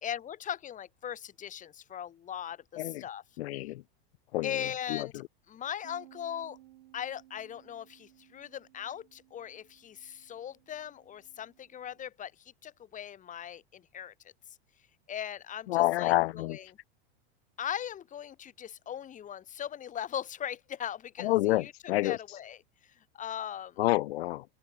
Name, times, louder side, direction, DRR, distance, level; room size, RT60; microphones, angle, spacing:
voice 1, 0.0-3.2 4.4-5.1 5.5-6.6 6.9-14.1 15.1-16.8 17.6-21.7 22.0-23.8, left 9 dB, 25° left, 1.2 m, -39 dB
voice 2, 3.4-3.8 4.3-4.5 4.9-5.1 15.7-16.6 21.2-22.2 23.8-24.4, left 17 dB, 80° left, 0.8 m, -28 dB
Bass guitar, 5.8-12.1, right 15 dB, 80° right, 7.3 m, -60 dB
open air
supercardioid pair, 125°, 31 cm